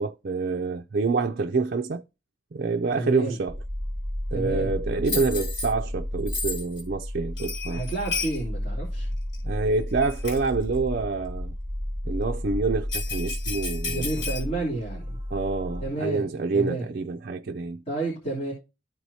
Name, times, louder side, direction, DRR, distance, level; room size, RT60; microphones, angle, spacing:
voice 1, 0.0-2.0 2.5-3.6 4.3-7.8 9.4-11.5 12.0-14.1 15.3-17.8, right 4 dB, 55° right, 0.5 m, -27 dB
voice 2, 3.0-3.4 4.3-4.8 7.7-9.1 13.8-15.2 15.8-16.3 16.5-16.9 17.9-18.5, right 2 dB, 35° left, 3.0 m, -30 dB
sound 1, 3.5-15.9, equal, 5° right, 2.8 m, -32 dB
Bell, 5.0-5.7 6.3-6.8 7.4-8.4 9.3-9.4 10.0-10.5 12.9-14.4, left 4 dB, 70° left, 4.2 m, -32 dB
13.5 x 4.6 x 2.7 m
head